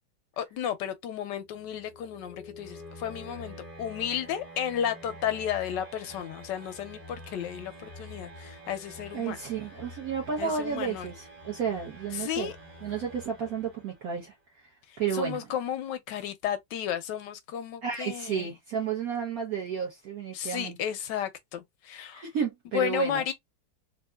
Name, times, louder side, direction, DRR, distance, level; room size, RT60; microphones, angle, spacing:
voice 1, 0.4-9.4 10.4-11.1 12.1-12.5 14.9-18.5 20.3-22.2 22.7-23.3, left 9 dB, 75° left, 1.1 m, -33 dB
sound 1, 1.4-14.2, equal, 20° right, 1.4 m, -47 dB
voice 2, 9.1-12.5 12.8-14.3 15.0-15.4 17.8-20.8 22.1-23.2, right 7 dB, 55° right, 1.1 m, -32 dB
3.6 x 2.6 x 2.2 m
omnidirectional pair, 2.2 m